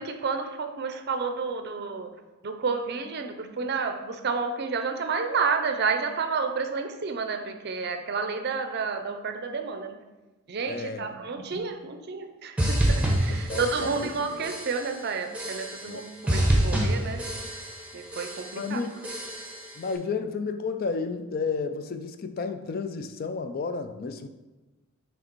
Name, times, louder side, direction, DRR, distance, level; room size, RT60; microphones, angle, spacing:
voice 1, 0.0-2.1 2.4-10.0 10.5-17.2 17.9-18.8, right 5 dB, 50° right, 7 dB, 0.5 m, -30 dB
voice 2, 10.6-11.1 13.3-14.1 15.9-16.0 18.5-19.0 19.8-24.3, left 4 dB, 45° left, 9 dB, 0.3 m, -32 dB
sound 1, 12.6-14.2 14.4-14.9 15.3-16.0 16.3-17.9 18.1-18.6 19.0-19.7, right 1 dB, 5° right, 0.8 m, -27 dB
6.4 x 3.4 x 4.4 m, 1.1 s
head